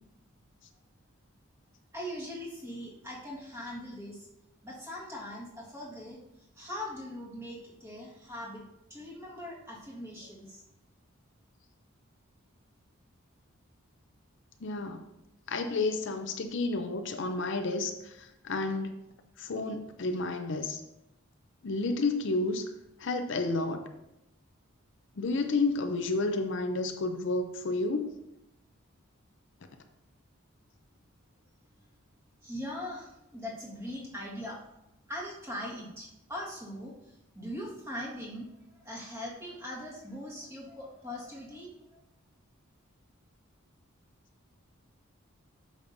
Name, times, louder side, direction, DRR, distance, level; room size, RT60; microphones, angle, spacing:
voice 1, 1.9-4.3 4.6-8.6 8.9-10.6 32.4-34.6 35.1-38.5 38.8-42.0, left 1 dB, 10° right, -5 dB, 1.6 m, -41 dB
voice 2, 14.6-15.0 15.5-19.0 19.4-20.8 21.6-22.6 23.0-23.8 25.2-28.1, left 3 dB, 55° left, 7 dB, 0.5 m, -31 dB
8.5 x 6.2 x 2.6 m, 0.88 s
head